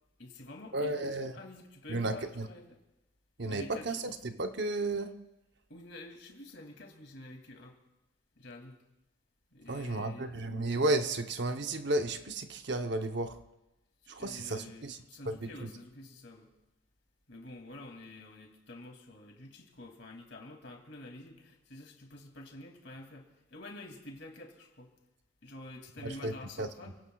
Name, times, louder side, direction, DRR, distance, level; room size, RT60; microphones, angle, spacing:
voice 1, 0.2-2.8 3.5-4.1 5.7-7.8 8.4-8.8 9.5-10.4 14.1-16.5 17.3-24.9 25.4-27.0, left 1 dB, 60° left, 2 dB, 2.6 m, -48 dB
voice 2, 0.7-1.3 1.9-2.5 3.4-5.1 9.7-13.4 14.1-15.0 15.2-15.7 26.0-26.7, right 2 dB, 55° right, 7 dB, 0.9 m, -33 dB
29.5 x 17.5 x 2.3 m, 0.96 s
head